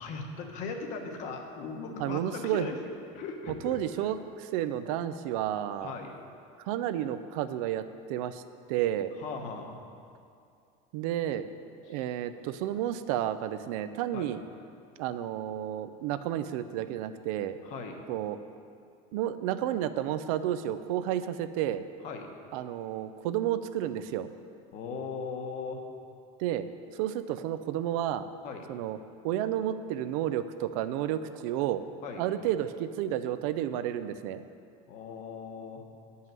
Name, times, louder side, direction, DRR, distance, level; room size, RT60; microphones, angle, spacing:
voice 1, 0.0-2.8 3.1-4.1 5.8-6.2 9.2-9.8 11.9-12.0 14.1-14.3 17.6-18.0 22.0-22.3 24.7-25.8 28.4-28.7 32.0-32.2 34.9-35.8, left 4 dB, 40° left, 4 dB, 1.0 m, -38 dB
voice 2, 2.0-2.7 3.6-5.9 6.6-7.8 8.1-8.4 8.7-9.1 10.9-11.4 11.9-14.4 15.0-17.6 18.1-18.4 19.1-21.9 22.5-24.3 26.4-26.7 27.0-28.2 28.7-29.0 29.2-31.8 32.2-34.4, right 11 dB, 70° right, 12 dB, 0.5 m, -31 dB
9.5 x 5.6 x 7.4 m, 2.4 s
cardioid pair, 175°, 19 cm